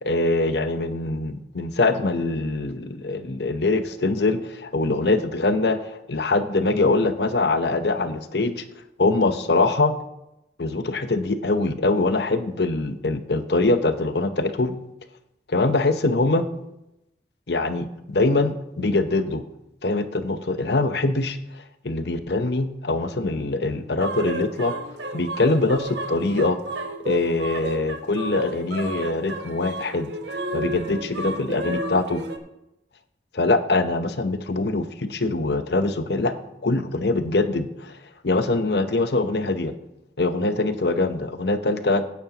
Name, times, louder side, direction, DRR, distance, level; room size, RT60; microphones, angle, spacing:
voice 1, 0.0-8.6 9.0-9.9 10.6-14.8 15.5-16.5 17.5-19.4 19.8-21.4 21.8-24.7 25.1-26.6 27.0-32.2 33.3-36.3 36.6-37.9 38.2-39.7 40.2-42.0, left 2 dB, 65° left, 9 dB, 0.9 m, -23 dB
sound 1, 24.0-32.4, right 1 dB, 80° right, 1.1 m, -32 dB
16.0 x 9.5 x 2.9 m, 0.88 s
head